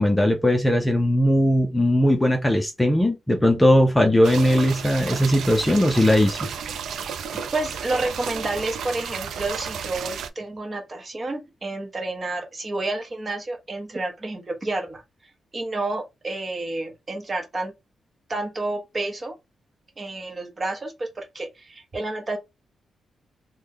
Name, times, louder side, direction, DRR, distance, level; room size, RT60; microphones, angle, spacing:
voice 1, 0.0-6.4, equal, 10° left, 0.5 m, -19 dB
sound 1, 4.2-10.3, right 7 dB, 80° right, 0.4 m, -33 dB
voice 2, 7.5-15.0 15.5-17.7 18.3-19.3 20.0-22.4, right 2 dB, 30° right, 0.9 m, -30 dB
3.1 x 2.2 x 3.5 m
cardioid pair, 110°, 0 cm